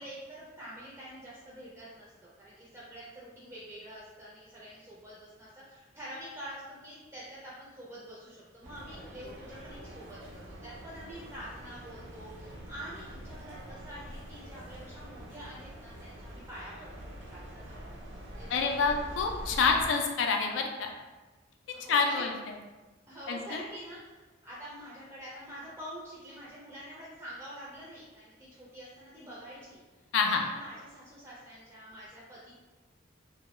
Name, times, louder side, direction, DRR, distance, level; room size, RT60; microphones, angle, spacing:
voice 1, 0.0-2.1 2.4-18.1 18.3-18.8 21.7-22.2 23.1-32.5, equal, 15° right, -7 dB, 0.4 m, -47 dB
sound 1, 8.6-19.9, equal, 75° right, 0.5 m, -45 dB
voice 2, 18.5-20.9 21.9-22.3 23.3-23.6 30.1-30.4, left 5 dB, 70° left, 3 dB, 0.3 m, -27 dB
2.2 x 2.0 x 2.9 m, 1.2 s
head